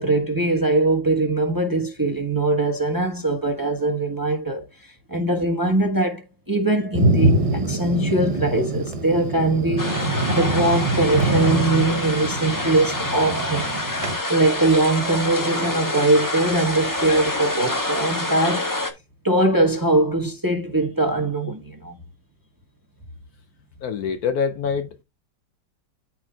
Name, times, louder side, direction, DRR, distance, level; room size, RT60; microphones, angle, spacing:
voice 1, 0.0-9.9 10.3-13.8 14.3-18.7 19.2-21.9, right 2 dB, 15° right, 1.1 m, -21 dB
Thunder, 6.9-14.2, right 2 dB, 50° right, 0.4 m, -24 dB
sound 1, 9.8-18.9, left 1 dB, 15° left, 1.0 m, -27 dB
voice 2, 23.8-25.0, left 6 dB, 65° left, 1.0 m, -25 dB
13.0 x 4.5 x 2.4 m
omnidirectional pair, 1.9 m